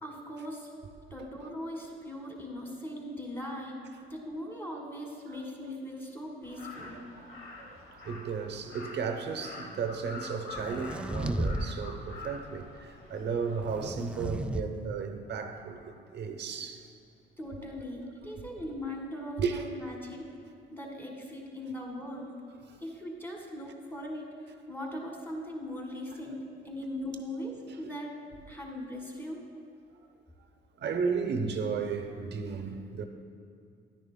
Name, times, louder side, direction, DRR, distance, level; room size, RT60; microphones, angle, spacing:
voice 1, 0.0-0.7 1.1-3.8 4.1-7.0 17.4-20.3 20.7-22.3 22.8-28.1 28.5-29.4, left 1 dB, 10° left, -1 dB, 1.7 m, -40 dB
Crow, 6.4-13.8, left 3 dB, 85° left, 1.2 m, -46 dB
voice 2, 8.0-16.8 19.4-19.6 27.8-27.9 30.8-33.0, right 5 dB, 60° right, 6 dB, 0.8 m, -34 dB
sound 1, 10.5-11.7 12.0-12.4 13.6-14.6, right 1 dB, 5° right, 0.3 m, -34 dB
10.5 x 10.0 x 2.2 m, 2.4 s
cardioid pair, 90°, 20 cm